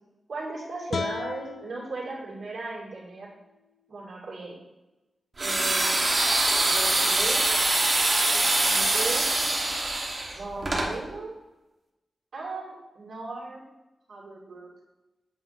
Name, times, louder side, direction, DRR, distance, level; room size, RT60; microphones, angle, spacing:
voice 1, 0.3-3.3 3.9-4.5 5.4-6.0 6.6-7.5 8.3-9.3 10.3-11.3 12.3-13.6 14.1-14.7, right 3 dB, 85° right, -5 dB, 2.1 m, -37 dB
sound 1, 0.9-4.1, left 4 dB, 60° left, 0.4 m, -38 dB
sound 2, 5.4-10.9, right 2 dB, 35° right, 1.0 m, -24 dB
7.8 x 2.7 x 5.6 m, 1.0 s
wide cardioid pair, 150°, 0 cm